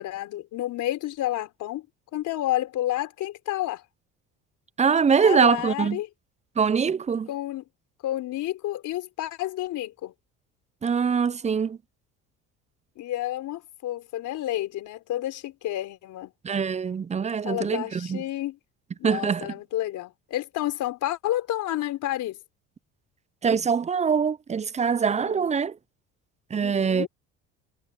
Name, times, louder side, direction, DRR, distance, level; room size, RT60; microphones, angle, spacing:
voice 1, 0.0-1.9 2.1-3.8 5.2-6.1 7.3-7.6 8.0-10.1 13.0-16.3 17.4-18.6 19.0-22.4 25.2-25.5 26.6-27.1, left 14 dB, 65° left, 3.9 m, -30 dB
voice 2, 4.8-6.0 6.6-7.3 10.8-11.8 16.4-18.2 19.0-19.5 23.4-25.8 26.5-27.1, right 6 dB, 20° right, 0.5 m, -23 dB
supercardioid pair, 80°, 32 cm